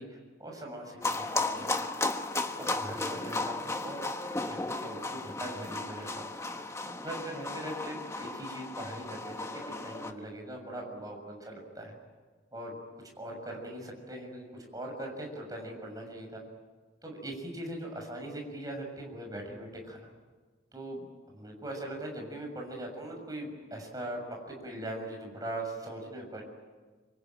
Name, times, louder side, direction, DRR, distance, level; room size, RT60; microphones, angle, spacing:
voice 1, 0.0-1.8 2.6-4.0 4.5-6.3 6.9-9.5 9.8-11.9 12.5-12.8 13.2-16.4 17.0-20.1 20.7-21.1 21.3-26.4, right 1 dB, 20° right, 1 dB, 6.7 m, -41 dB
sound 1, 1.0-10.1, left 2 dB, 15° left, 1.4 m, -35 dB
26.0 x 25.0 x 9.1 m, 1.4 s
head